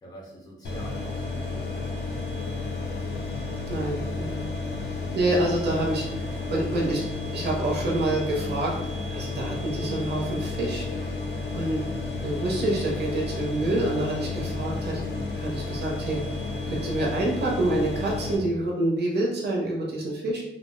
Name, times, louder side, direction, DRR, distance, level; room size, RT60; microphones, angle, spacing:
voice 1, 0.0-2.3, equal, 20° left, -4 dB, 0.5 m, -46 dB
sound 1, 0.6-18.4, left 3 dB, 60° left, 0.5 m, -32 dB
voice 2, 3.7-4.5 4.8-7.1 7.3-8.7 9.1-11.0 11.5-11.8 12.2-15.0 15.4-16.2 16.7-20.4, right 1 dB, 60° right, -3 dB, 0.6 m, -27 dB
2.4 x 2.0 x 3.5 m, 0.98 s
wide cardioid pair, 175°, 20 cm